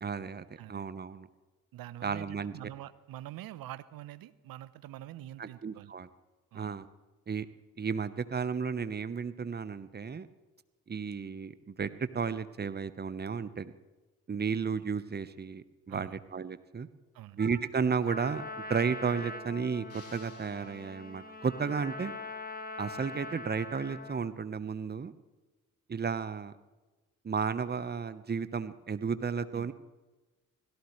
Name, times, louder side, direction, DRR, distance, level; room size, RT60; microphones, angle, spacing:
voice 1, 0.0-1.3 2.0-2.5 5.4-6.1 6.5-6.9 7.3-7.5 7.8-10.3 10.9-13.7 14.3-16.9 17.3-22.1 22.8-25.1 25.9-26.5 27.2-29.7, right 5 dB, 25° right, 14 dB, 1.0 m, -33 dB
voice 2, 1.7-5.9 6.5-6.7 15.9-16.2 17.1-17.4 29.5-29.7, right 14 dB, 60° right, 16 dB, 0.8 m, -45 dB
Trumpet, 18.1-24.3, left 2 dB, 20° left, 1.7 m, -42 dB
sound 1, 19.9-21.4, left 3 dB, 40° left, 7.3 m, -58 dB
25.0 x 17.0 x 3.2 m, 1.2 s
hypercardioid pair, 45°, 41 cm